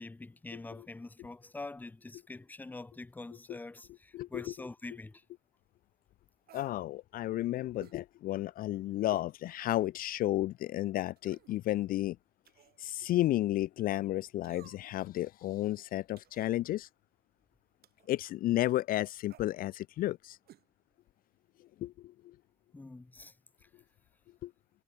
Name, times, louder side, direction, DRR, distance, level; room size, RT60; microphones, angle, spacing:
voice 1, 0.0-5.2 22.7-23.3, left 2 dB, 10° left, 0.7 m, -45 dB
voice 2, 4.1-4.5 6.5-12.2 12.8-16.9 18.1-20.4 21.8-22.3 24.4-24.5, left 15 dB, 60° left, 0.4 m, -32 dB
sound 1, 6.5-6.8 7.8-8.0 9.1-9.3 9.8-9.9 11.2-11.6 12.4-12.8 14.4-15.0 16.2-16.5 17.8-18.1 19.3-19.5 20.5-20.7 20.9-21.0, right 13 dB, 65° right, 6.7 m, -57 dB
cardioid pair, 110°, 17 cm